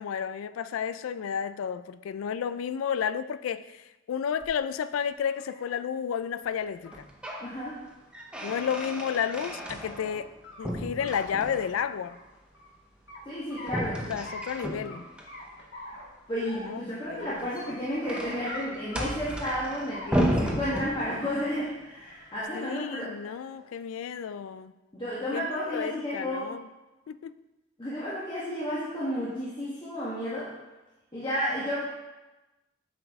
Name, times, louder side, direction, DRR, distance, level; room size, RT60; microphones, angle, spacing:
voice 1, 0.0-7.1 8.4-12.2 14.1-15.1 16.6-16.8 17.1-17.4 22.5-24.7 25.3-26.7 27.1-27.3, left 7 dB, 80° left, 0.3 m, -32 dB
sound 1, 4.4-4.5 5.1-5.8 6.8-6.9 7.3-7.4 7.8-7.9 8.4-8.8 10.0-10.6 11.0-11.1 11.4-12.7 13.1-13.8 14.2-14.5 14.8-15.0 15.3-16.1 16.4-16.8 17.2-17.3 17.6-17.7 18.1-18.2 18.5-18.6 18.9-19.6 19.9-20.3 20.6-20.8 21.1-21.5 21.9-22.4 23.2-23.7, left 2 dB, 60° left, 1.4 m, -44 dB
sound 2, 6.9-7.5 7.9-10.3 10.6-11.8 13.6-15.3 17.3-21.4, equal, 5° right, 0.7 m, -33 dB
voice 2, 7.4-7.8 13.2-14.2 16.3-23.1 24.9-26.5 27.8-30.5 31.1-31.8, equal, 25° left, 1.4 m, -32 dB
8.3 x 5.3 x 3.5 m
head